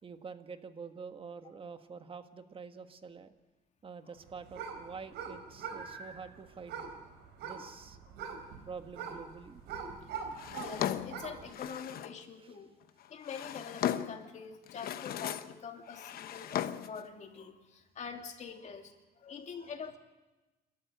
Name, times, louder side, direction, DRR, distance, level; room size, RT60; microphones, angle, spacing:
voice 1, 0.0-3.3 3.8-6.9 7.4-8.0 8.6-9.6, right 5 dB, 30° right, 8 dB, 1.5 m, -47 dB
sound 1, 4.2-11.5, right 6 dB, 85° right, 4.2 m, -43 dB
voice 2, 10.1-12.7 13.1-20.0, left 6 dB, 45° left, 4 dB, 2.7 m, -45 dB
Drawer open or close, 10.4-12.2 13.0-14.3 14.7-15.6 15.9-17.0, left 10 dB, 60° left, 1.0 m, -37 dB
28.5 x 13.5 x 7.9 m, 1.1 s
cardioid pair, 110°, 17 cm